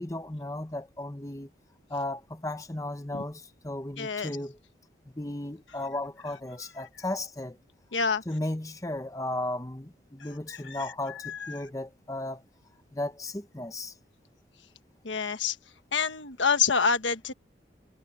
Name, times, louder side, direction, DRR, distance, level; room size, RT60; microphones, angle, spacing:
voice 1, 0.0-1.5 1.9-4.6 5.1-7.6 8.3-12.4 12.9-13.9, left 1 dB, 20° left, 1.0 m, -35 dB
voice 2, 4.0-4.3 7.9-8.2 10.5-10.9 11.2-11.5 15.0-15.6 15.9-17.3, left 5 dB, 90° left, 1.4 m, -27 dB
head